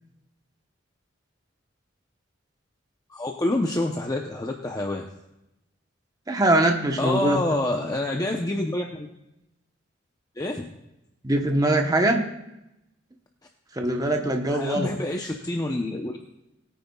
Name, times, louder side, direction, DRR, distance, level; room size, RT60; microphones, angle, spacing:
voice 1, 3.1-5.1 7.0-9.1 10.4-10.7 14.5-16.2, left 1 dB, 20° left, 1 dB, 0.7 m, -27 dB
voice 2, 6.3-7.4 11.2-12.2 13.7-14.9, right 1 dB, 20° right, 3 dB, 1.0 m, -22 dB
21.0 x 9.4 x 2.3 m, 0.89 s
head